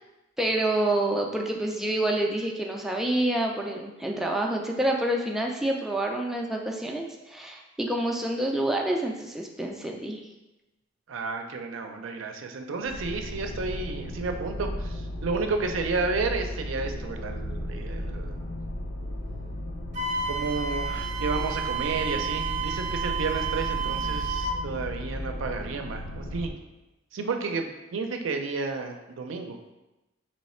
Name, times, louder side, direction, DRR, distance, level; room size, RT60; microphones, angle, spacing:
voice 1, 0.4-10.2, right 1 dB, ahead, 0 dB, 0.3 m, -27 dB
voice 2, 11.1-18.3 20.3-26.5 27.1-29.6, right 4 dB, 85° right, 5 dB, 0.5 m, -31 dB
sound 1, 12.8-26.5, left 1 dB, 70° left, 0.6 m, -35 dB
Wind instrument woodwind instrument, 19.9-24.6, right 5 dB, 40° right, 0.7 m, -31 dB
3.1 x 3.1 x 4.2 m, 1.0 s
head